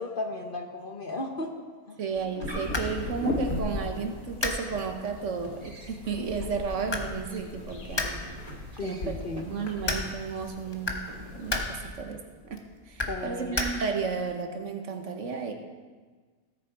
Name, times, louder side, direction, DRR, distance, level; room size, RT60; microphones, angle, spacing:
voice 1, 0.0-1.5 1.9-2.0 8.8-9.5 13.1-13.6, left 2 dB, 40° left, 3 dB, 1.0 m, -35 dB
sound 1, 2.0-12.0, right 1 dB, 25° right, 1.8 m, -48 dB
voice 2, 2.0-8.3 8.8-15.5, right 5 dB, 60° right, 4 dB, 1.3 m, -33 dB
sound 2, 2.2-14.2, left 2 dB, 20° left, 0.8 m, -37 dB
sound 3, 2.4-11.9, left 1 dB, 70° left, 1.8 m, -38 dB
16.5 x 6.9 x 4.6 m, 1.5 s
omnidirectional pair, 1.5 m